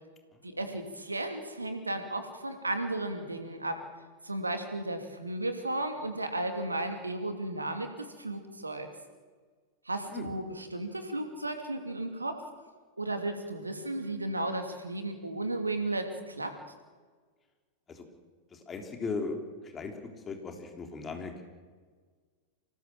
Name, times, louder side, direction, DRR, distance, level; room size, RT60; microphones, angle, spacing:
voice 1, 0.4-3.8 4.2-8.9 9.8-12.4 13.0-16.5, right 2 dB, 80° right, 6 dB, 2.8 m, -34 dB
voice 2, 18.5-19.9 20.3-21.4, left 4 dB, 20° left, 5 dB, 3.5 m, -38 dB
25.5 x 18.5 x 7.8 m, 1.5 s
figure-of-eight pair, 90°, 0 cm